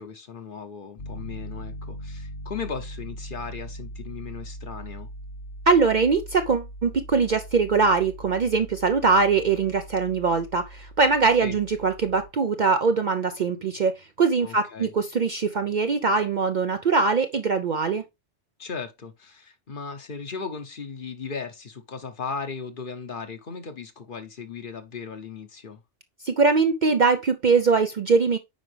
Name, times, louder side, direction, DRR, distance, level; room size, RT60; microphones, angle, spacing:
voice 1, 0.0-5.1 11.4-11.6 14.4-14.9 18.6-25.8, left 5 dB, 45° left, 1.0 m, -37 dB
Piano, 1.0-12.3, equal, 65° left, 1.5 m, -40 dB
voice 2, 5.7-18.0 26.2-28.4, right 4 dB, 50° right, 0.6 m, -22 dB
9.3 x 5.0 x 3.3 m
omnidirectional pair, 1.3 m